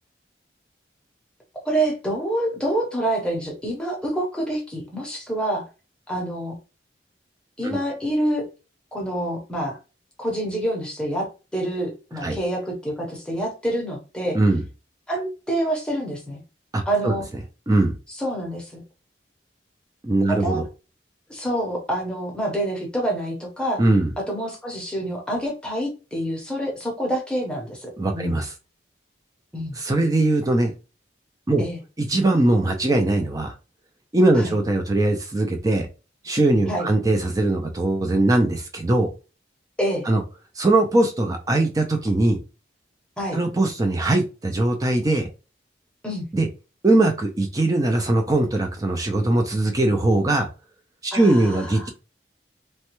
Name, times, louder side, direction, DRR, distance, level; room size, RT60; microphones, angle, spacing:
voice 1, 1.6-5.7 6.1-6.6 7.6-8.5 8.9-9.8 10.2-11.3 11.5-14.4 15.1-16.4 16.9-17.2 18.2-18.8 20.3-20.6 21.3-23.8 24.3-28.4 29.5-29.8 31.6-31.8 34.3-34.5 36.6-36.9 39.8-40.1 43.2-43.4 46.0-46.3 51.1-51.9, right 1 dB, 5° left, -1 dB, 0.7 m, -27 dB
voice 2, 16.7-17.1 17.7-18.0 20.0-20.6 23.8-24.1 28.0-28.5 29.8-30.7 31.5-31.6 32.0-33.5 34.1-35.9 36.2-39.1 40.1-40.2 40.6-42.4 43.3-45.3 46.3-46.5 46.8-50.5 51.0-51.9, right 2 dB, 20° right, 5 dB, 0.4 m, -20 dB
3.1 x 2.2 x 3.0 m, 0.32 s
head